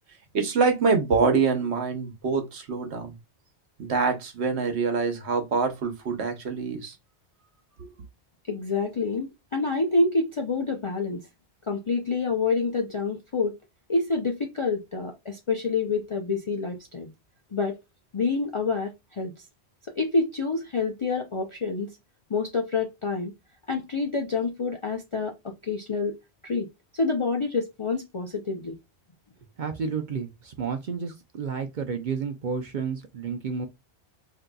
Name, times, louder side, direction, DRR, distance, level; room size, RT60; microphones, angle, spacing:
voice 1, 0.3-3.1 3.8-6.9, right 4 dB, 70° right, 1.1 m, -25 dB
voice 2, 8.5-11.2 11.7-13.6 13.9-17.1 17.5-17.8 18.1-19.3 20.0-22.0 22.3-23.3 23.7-26.2 26.4-26.7 26.9-28.7, left 3 dB, 50° left, 0.4 m, -27 dB
voice 3, 29.6-33.7, right 6 dB, 55° right, 0.5 m, -31 dB
3.8 x 2.7 x 2.2 m
omnidirectional pair, 1.2 m